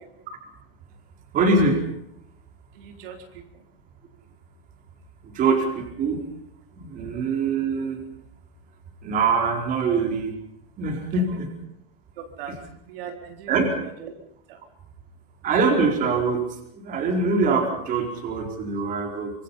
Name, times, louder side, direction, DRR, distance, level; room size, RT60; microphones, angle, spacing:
voice 1, 1.3-1.8 5.2-6.2 6.7-8.0 9.0-10.4 10.8-11.5 12.5-12.6 13.5-13.7 15.4-16.4 16.7-19.3, right 4 dB, 25° right, 3 dB, 4.6 m, -23 dB
voice 2, 2.7-3.7 7.0-7.1 12.2-12.6 12.9-14.1 14.5-14.6, right 7 dB, 65° right, 3 dB, 4.1 m, -40 dB
25.5 x 24.0 x 5.6 m, 0.72 s
supercardioid pair, 165°, 31 cm